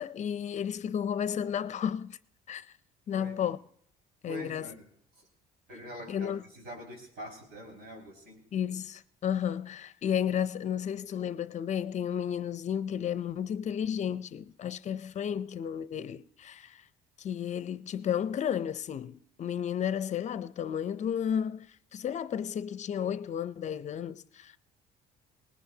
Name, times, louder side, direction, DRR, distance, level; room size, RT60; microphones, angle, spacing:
voice 1, 0.0-2.2 2.5-2.7 3.1-3.6 4.2-4.7 6.1-6.4 8.5-16.8 17.2-24.6, left 9 dB, 45° left, 0.5 m, -32 dB
voice 2, 3.1-3.5 4.3-4.9 5.1-5.2 5.7-8.4, right 1 dB, 75° right, 5.2 m, -45 dB
19.5 x 19.5 x 2.8 m
cardioid pair, 110°, 17 cm